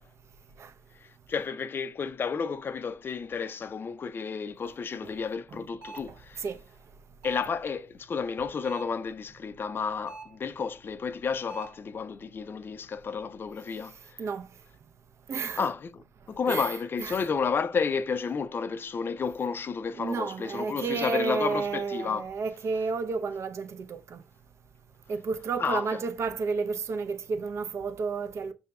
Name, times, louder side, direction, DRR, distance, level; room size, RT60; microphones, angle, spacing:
voice 1, 1.0-6.4 7.2-14.2 15.6-22.3 25.6-25.9, left 5 dB, 35° left, 0.4 m, -31 dB
sound 1, 5.8-6.2 7.2-7.6 8.6-9.1 10.1-10.4 11.5-11.9, right 3 dB, 85° right, 0.8 m, -45 dB
voice 2, 15.3-15.6 16.5-16.7 17.0-17.2 19.9-24.2 25.1-28.5, right 4 dB, 50° right, 0.5 m, -31 dB
6.6 x 2.8 x 2.2 m
hypercardioid pair, 55°, 6 cm